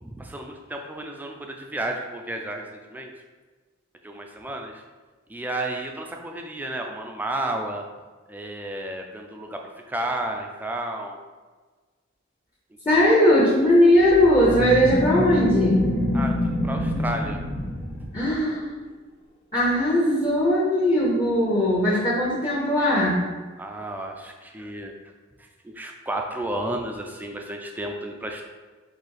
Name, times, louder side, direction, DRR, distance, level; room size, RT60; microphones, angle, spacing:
voice 1, 0.0-3.1 4.0-4.8 5.3-7.8 8.3-11.2 12.9-13.0 16.1-18.1 23.6-24.9 25.6-28.4, right 1 dB, 10° right, 2 dB, 0.4 m, -32 dB
voice 2, 12.9-15.9 18.1-18.6 19.5-23.2, left 1 dB, 20° left, -7 dB, 0.8 m, -19 dB
sound 1, 14.0-18.4, left 1 dB, 60° left, 0.8 m, -26 dB
4.1 x 2.7 x 4.7 m, 1.4 s
head